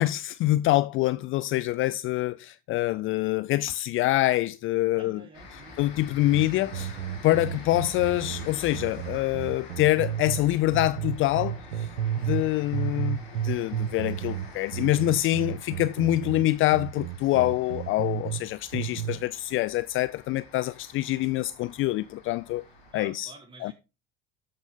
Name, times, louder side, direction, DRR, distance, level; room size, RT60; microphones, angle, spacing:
voice 1, 0.0-5.2 5.8-7.0 7.2-11.9 12.2-13.2 13.4-22.6 22.9-23.3 23.6-23.7, left 16 dB, 45° left, 0.4 m, -25 dB
voice 2, 4.9-6.0 22.9-23.7, right 3 dB, 15° right, 4.6 m, -49 dB
sound 1, 5.3-22.9, left 4 dB, 80° left, 4.1 m, -47 dB
sound 2, 6.3-10.4 10.7-12.5 12.7-18.4 18.7-19.2, right 10 dB, 75° right, 1.0 m, -32 dB
13.0 x 5.5 x 3.6 m
hypercardioid pair, 70°, 31 cm